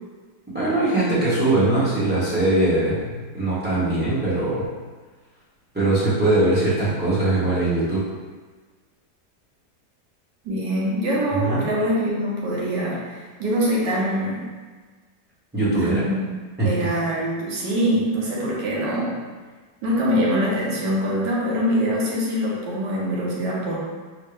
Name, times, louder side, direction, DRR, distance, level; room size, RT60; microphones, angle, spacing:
voice 1, 0.5-4.6 5.7-8.0 11.4-11.6 15.5-16.0 16.6-16.9, right 2 dB, 10° right, -11 dB, 0.8 m, -21 dB
voice 2, 10.4-14.4 15.8-16.2 16.6-19.2 19.8-23.8, equal, 80° right, -5 dB, 1.5 m, -24 dB
4.4 x 2.1 x 3.3 m, 1.4 s
omnidirectional pair, 1.9 m